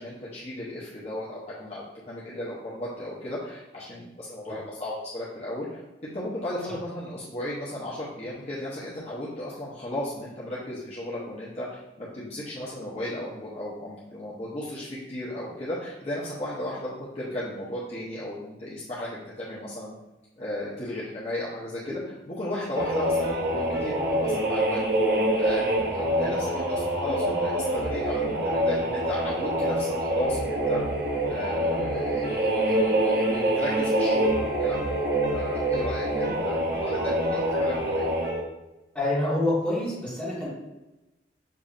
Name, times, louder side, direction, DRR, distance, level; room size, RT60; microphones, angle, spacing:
voice 1, 0.0-19.9 20.4-22.0 22.3-30.8 31.3-34.8 35.3-37.1 37.6-38.1, left 1 dB, 35° left, -8 dB, 0.8 m, -35 dB
sound 1, 22.7-38.4, right 1 dB, 60° right, 0.7 m, -26 dB
voice 2, 36.8-37.2 37.5-37.6 38.9-40.5, left 1 dB, 5° left, -8 dB, 1.5 m, -28 dB
6.7 x 2.6 x 2.4 m, 1.0 s
head